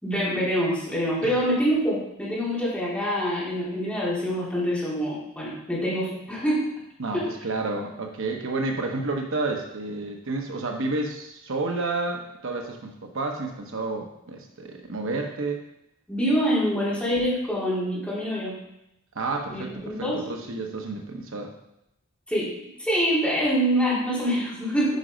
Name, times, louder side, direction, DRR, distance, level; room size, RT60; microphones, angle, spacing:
voice 1, 0.0-6.7 7.1-7.3 16.1-18.5 19.5-20.2 22.3-22.5 22.8-25.0, equal, 5° left, -8 dB, 3.5 m, -25 dB
voice 2, 7.0-15.6 19.1-21.5, right 3 dB, 65° right, 2 dB, 1.0 m, -30 dB
9.4 x 5.3 x 5.1 m, 0.84 s
head